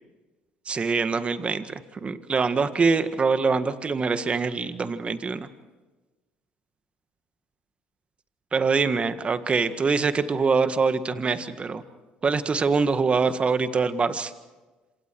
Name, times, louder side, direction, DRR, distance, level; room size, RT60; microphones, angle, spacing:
voice 1, 0.7-1.7 2.0-5.5 8.5-11.8 12.2-14.3, right 4 dB, 35° right, 11 dB, 1.7 m, -24 dB
27.0 x 26.5 x 4.7 m, 1.2 s
hypercardioid pair, 65°, 4 cm